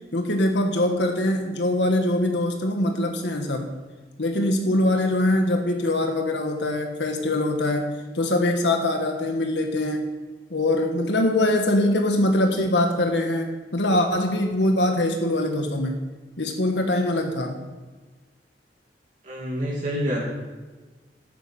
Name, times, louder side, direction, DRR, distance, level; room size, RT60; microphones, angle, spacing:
voice 1, 0.1-3.7 4.2-10.1 10.5-16.0 16.4-17.6, left 1 dB, 85° left, 4 dB, 1.5 m, -23 dB
voice 2, 19.2-20.2, equal, 45° right, -7 dB, 2.7 m, -27 dB
11.0 x 9.2 x 6.8 m, 1.3 s
head